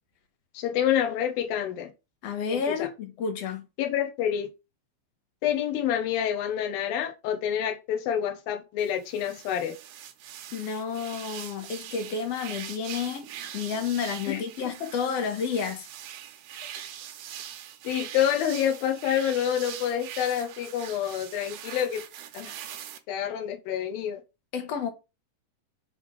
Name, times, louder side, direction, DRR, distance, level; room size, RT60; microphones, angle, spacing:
voice 1, 0.5-1.9 2.5-2.9 3.8-4.5 5.4-9.7 14.3-14.4 14.8-14.9 17.8-22.0 22.3-22.6 23.1-24.2, left 9 dB, 80° left, 2.9 m, -28 dB
voice 2, 2.2-3.6 10.5-13.3 13.5-15.9 24.5-24.9, left 6 dB, 55° left, 2.0 m, -30 dB
sound 1, 8.8-23.0, right 10 dB, 70° right, 2.2 m, -42 dB
8.3 x 3.6 x 5.3 m
omnidirectional pair, 4.1 m